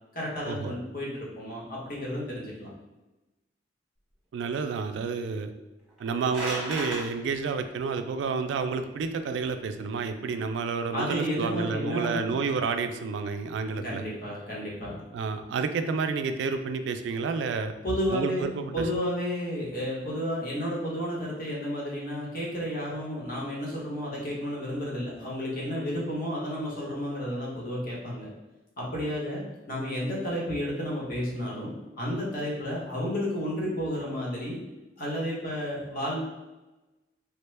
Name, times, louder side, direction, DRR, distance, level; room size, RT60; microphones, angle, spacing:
voice 1, 0.1-2.7 10.9-12.3 13.8-15.0 17.8-18.5 18.7-28.3 28.8-31.7 32.0-34.6 35.0-36.2, equal, 55° left, -4 dB, 1.0 m, -32 dB
voice 2, 4.3-5.5 6.0-14.0 15.1-17.7 18.1-18.9, right 5 dB, 90° right, 8 dB, 0.3 m, -30 dB
sound 1, 5.9-7.0, right 1 dB, 5° right, 1.0 m, -34 dB
3.4 x 2.2 x 3.2 m, 1.1 s
head